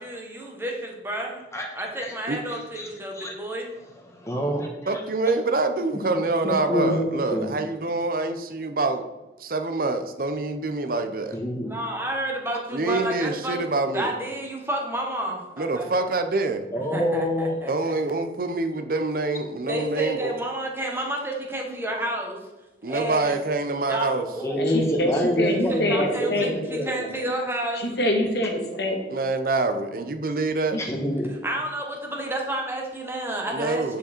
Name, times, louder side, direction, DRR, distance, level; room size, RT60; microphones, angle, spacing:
voice 1, 0.0-1.4 1.7-3.7 11.6-13.6 13.9-15.9 16.8-18.2 19.7-22.4 22.8-23.4 23.9-25.0 25.7-27.8 31.4-34.0, right 1 dB, 15° right, 0 dB, 1.3 m, -31 dB
voice 2, 2.5-2.9 3.1-3.3 4.1-4.7 6.1-7.5 11.3-11.9 16.7-17.5 24.4-27.1 30.8-31.4, equal, 15° left, 1 dB, 1.3 m, -27 dB
voice 3, 4.9-9.1 9.4-11.4 12.7-14.1 15.6-16.7 17.7-20.3 22.8-24.3 29.1-30.8 33.5-34.0, right 3 dB, 55° right, 8 dB, 0.7 m, -26 dB
voice 4, 24.6-26.5 27.7-29.1 30.7-30.8, left 1 dB, 70° left, 2 dB, 1.7 m, -25 dB
9.4 x 5.1 x 4.4 m, 1.1 s
head